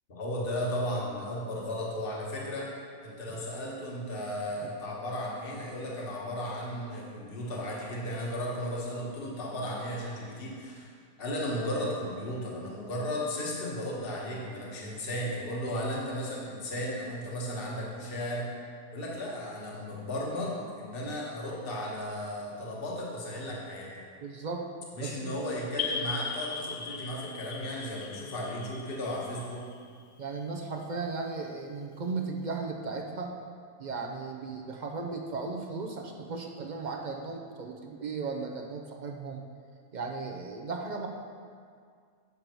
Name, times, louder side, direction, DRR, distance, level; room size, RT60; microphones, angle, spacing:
voice 1, 0.1-2.7 3.0-10.9 11.2-18.5 18.9-24.0 24.9-29.6, equal, 40° left, -4 dB, 1.4 m, -35 dB
voice 2, 24.2-24.7 25.0-25.3 30.2-33.4 33.8-39.4 39.9-41.1, right 4 dB, 60° right, 2 dB, 0.4 m, -36 dB
sound 1, 25.8-30.2, left 5 dB, 65° left, 0.8 m, -38 dB
8.2 x 6.7 x 4.4 m, 2.1 s
omnidirectional pair, 1.5 m